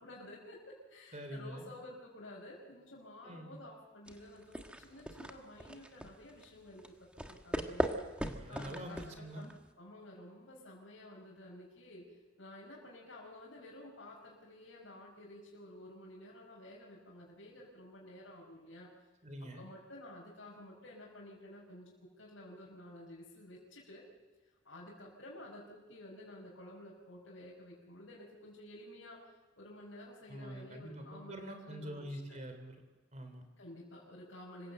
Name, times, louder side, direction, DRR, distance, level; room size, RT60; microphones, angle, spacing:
voice 1, 0.0-7.9 8.5-9.5 9.8-12.0 12.4-18.9 19.6-24.1 24.6-29.3 29.6-32.4 33.6-34.7, left 1 dB, 85° left, -4 dB, 5.2 m, -52 dB
voice 2, 1.1-1.7 3.2-3.6 8.2-9.5 19.2-19.7 30.3-32.8 33.1-33.4, equal, 35° right, 7 dB, 3.4 m, -45 dB
sound 1, 4.1-9.7, right 1 dB, 5° right, 1.3 m, -40 dB
26.0 x 16.5 x 8.0 m, 1.2 s
head